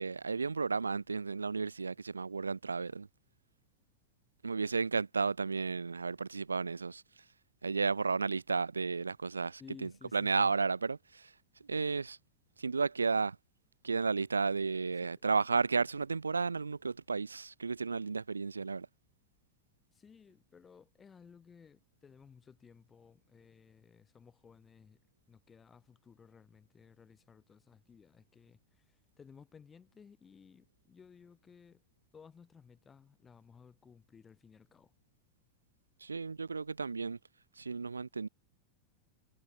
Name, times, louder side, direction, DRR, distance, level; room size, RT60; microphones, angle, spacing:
voice 1, 0.0-3.1 4.4-7.2 7.6-11.3 11.6-12.2 12.6-13.4 13.8-18.9 36.0-37.2 37.6-38.3, right 4 dB, 75° right, 0.7 m, -33 dB
voice 2, 9.6-10.5 19.9-25.0 25.3-31.8 32.1-34.9, left 6 dB, 20° left, 6.3 m, -58 dB
figure-of-eight pair, 90°, 0 cm